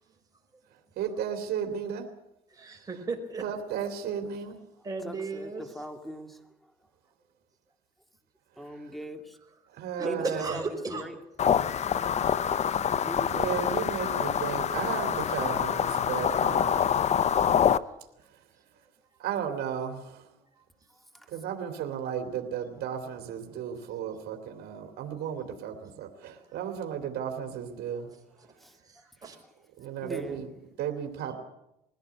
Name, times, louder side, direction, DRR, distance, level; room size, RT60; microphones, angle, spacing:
voice 1, 1.0-2.1 3.4-4.6 9.8-10.4 13.3-17.0 19.2-20.2 21.3-28.1 29.8-30.5 30.8-31.3, right 8 dB, 70° right, 5 dB, 2.8 m, -34 dB
voice 2, 2.5-3.5 4.8-5.7 9.5-9.6 9.9-11.1 18.7-19.1 20.3-20.6 24.9-25.0 25.3-25.4 28.1-28.5 28.8-29.4, right 3 dB, 20° right, 1 dB, 5.0 m, -37 dB
voice 3, 5.0-5.5 5.7-6.4 8.6-9.4 10.0-11.1 13.0-13.8 21.1-21.3 28.6-28.7 30.0-30.5, equal, ahead, 6 dB, 2.4 m, -40 dB
sound 1, 11.4-17.8, left 8 dB, 40° left, 0.7 m, -26 dB
21.0 x 16.5 x 8.4 m, 0.87 s
cardioid pair, 110°, 17 cm